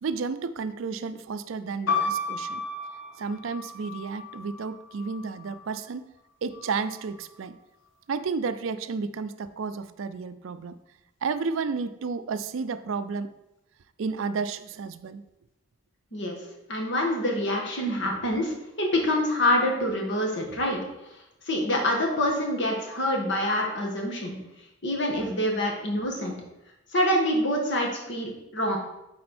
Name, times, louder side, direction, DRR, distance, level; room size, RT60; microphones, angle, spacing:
voice 1, 0.0-2.6 3.2-6.1 6.4-7.6 8.1-10.8 11.2-13.3 14.0-15.2, right 5 dB, 65° right, 12 dB, 0.4 m, -32 dB
sound 1, 1.9-5.7 6.5-7.2, left 3 dB, 70° left, 1.2 m, -33 dB
voice 2, 16.7-20.8 21.5-24.4 24.8-26.3 26.9-28.8, left 1 dB, 55° left, 0 dB, 1.5 m, -26 dB
8.6 x 4.2 x 4.3 m, 0.90 s
head